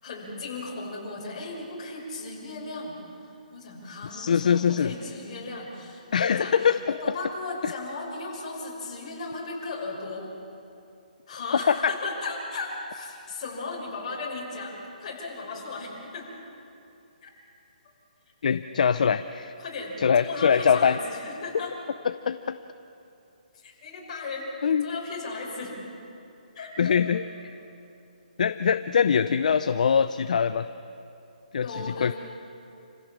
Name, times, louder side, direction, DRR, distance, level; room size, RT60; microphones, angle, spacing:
voice 1, 0.0-3.0 3.5-10.3 11.3-16.2 17.2-17.3 18.4-18.6 19.6-21.7 23.5-25.8 26.5-27.2 31.6-32.1, left 3 dB, 40° left, -3 dB, 6.3 m, -36 dB
voice 2, 4.1-4.9 6.1-6.8 18.4-19.5 20.0-21.0 22.0-22.6 24.6-24.9 26.8-27.5 28.4-30.7 31.5-32.1, left 7 dB, 60° left, 11 dB, 0.6 m, -23 dB
28.5 x 16.0 x 7.5 m, 2.8 s
hypercardioid pair, 165°, 5 cm